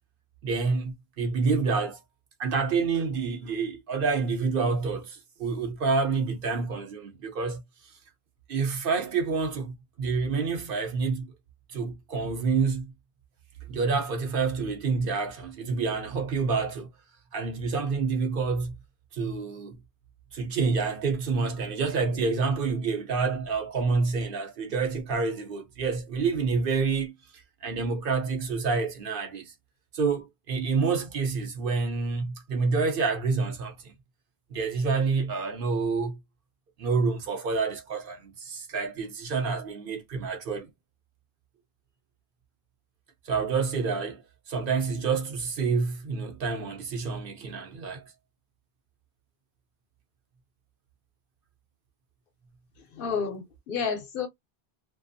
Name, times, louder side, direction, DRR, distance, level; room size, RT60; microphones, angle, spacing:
voice 1, 0.4-2.0 2.4-7.6 8.5-11.3 11.7-12.9 13.7-16.9 17.3-18.7 19.1-19.8 20.3-27.1 27.6-29.5 29.9-33.9 34.5-36.2 36.8-40.7 43.3-44.2 44.5-48.0, right 4 dB, 65° right, 0.8 m, -28 dB
voice 2, 52.9-54.3, left 6 dB, 60° left, 0.8 m, -30 dB
2.4 x 2.3 x 2.5 m
omnidirectional pair, 1.1 m